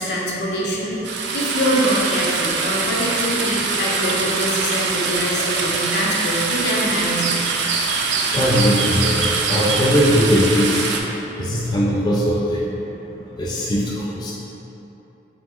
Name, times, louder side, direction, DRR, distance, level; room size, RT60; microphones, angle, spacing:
voice 1, 0.0-7.3, equal, 70° left, -3 dB, 0.6 m, -24 dB
sound 1, 1.0-11.0, right 4 dB, 80° right, 0.4 m, -23 dB
voice 2, 8.3-10.8 11.4-12.7 13.4-14.3, equal, 25° left, -5 dB, 0.3 m, -19 dB
3.3 x 3.0 x 3.6 m, 2.9 s
head